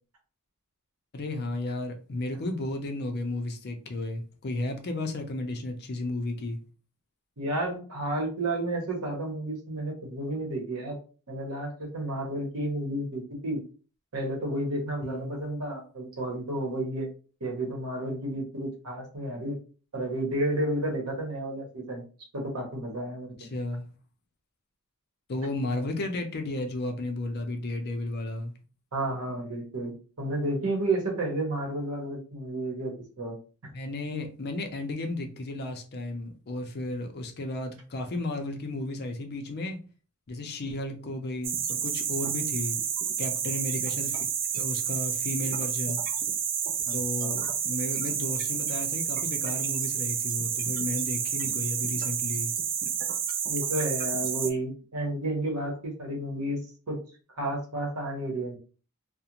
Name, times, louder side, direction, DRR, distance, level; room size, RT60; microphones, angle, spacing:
voice 1, 1.1-6.6 15.0-15.4 23.4-23.9 25.3-28.5 33.7-39.8 40.3-42.8 43.2-44.3 44.5-46.0 46.9-52.5, left 2 dB, 50° left, 0.5 m, -33 dB
voice 2, 7.4-11.0 11.3-13.6 14.1-17.1 17.4-19.6 19.9-22.0 22.3-23.5 28.9-33.4 33.6-33.7 46.8-47.3 53.5-57.0 57.4-58.6, right 1 dB, 75° right, 0.9 m, -31 dB
sound 1, 41.4-54.5, right 8 dB, 40° right, 0.3 m, -30 dB
2.4 x 2.1 x 2.9 m
head